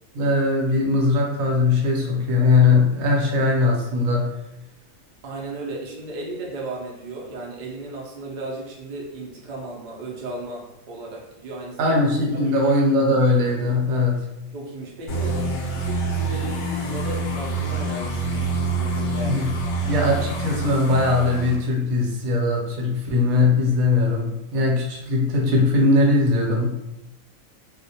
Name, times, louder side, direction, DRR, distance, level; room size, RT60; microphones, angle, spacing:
voice 1, 0.1-4.3 11.8-14.2 19.2-19.5 19.9-26.8, left 3 dB, 80° right, -1 dB, 1.0 m, -20 dB
voice 2, 5.2-12.0 12.3-12.6 14.5-15.4 15.8-20.0, right 2 dB, 60° right, -2 dB, 0.5 m, -35 dB
sound 1, 15.1-21.6, right 2 dB, 60° left, 0.7 m, -26 dB
2.3 x 2.1 x 2.7 m, 0.90 s
omnidirectional pair, 1.4 m